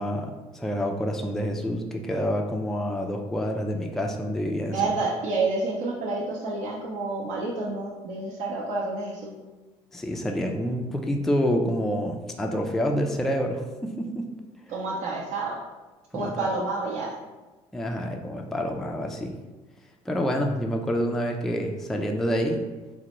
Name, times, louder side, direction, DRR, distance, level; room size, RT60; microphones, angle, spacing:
voice 1, 0.0-4.8 9.9-14.3 16.1-16.5 17.7-19.4 20.1-22.6, equal, ahead, 2 dB, 0.4 m, -27 dB
voice 2, 4.7-9.3 14.7-15.6 16.1-17.1, right 3 dB, 55° right, -5 dB, 0.6 m, -29 dB
3.9 x 2.1 x 3.0 m, 1.2 s
hypercardioid pair, 60°, 16 cm